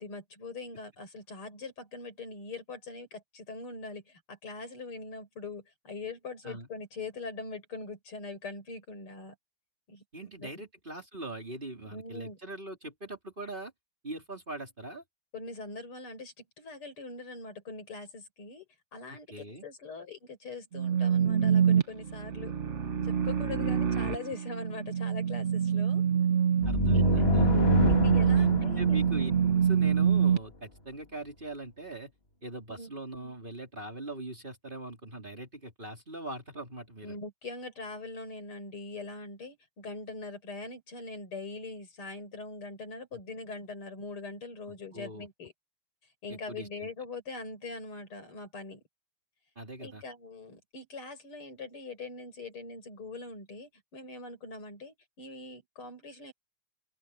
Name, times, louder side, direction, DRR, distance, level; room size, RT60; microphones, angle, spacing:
voice 1, 0.0-9.3 9.9-10.6 11.9-12.4 15.3-18.7 18.9-22.5 23.0-26.0 26.9-27.4 27.9-29.0 32.7-32.9 37.0-45.5 46.2-48.8 49.8-56.3, left 3 dB, 80° left, 6.3 m, -42 dB
voice 2, 10.1-13.7 14.0-15.0 19.1-19.7 23.6-24.1 26.7-27.6 28.4-32.1 32.4-37.2 44.9-45.3 46.3-46.9 49.6-50.0, right 2 dB, 25° right, 4.1 m, -41 dB
sound 1, 20.7-30.4, right 7 dB, 40° right, 1.3 m, -26 dB
sound 2, 26.6-30.2, left 2 dB, 30° left, 2.7 m, -27 dB
open air
omnidirectional pair, 2.4 m